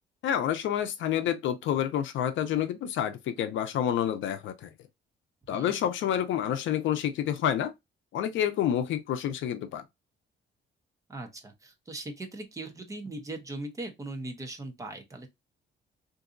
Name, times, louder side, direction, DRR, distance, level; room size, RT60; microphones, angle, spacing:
voice 1, 0.2-4.7 5.5-7.7 8.1-9.8, left 10 dB, 75° left, 0.5 m, -28 dB
voice 2, 11.1-15.3, right 2 dB, 15° right, 0.7 m, -39 dB
3.9 x 2.6 x 2.5 m
cardioid pair, 170°, 20 cm